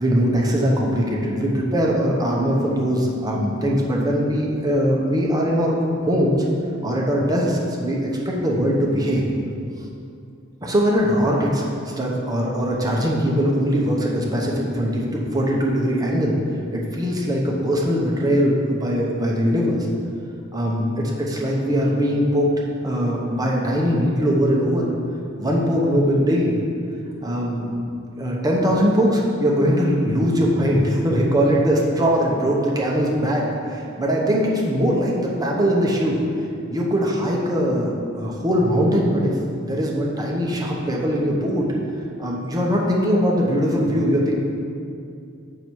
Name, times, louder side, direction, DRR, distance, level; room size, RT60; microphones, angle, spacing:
voice 1, 0.0-5.8 6.1-6.4 6.8-9.2 10.6-16.4 16.7-19.9 20.5-22.5 22.8-24.9 25.4-26.6 27.2-27.7 28.2-36.2 36.7-41.7 42.2-44.4, equal, 20° right, -3 dB, 0.9 m, -21 dB
6.8 x 5.5 x 4.6 m, 2.5 s
head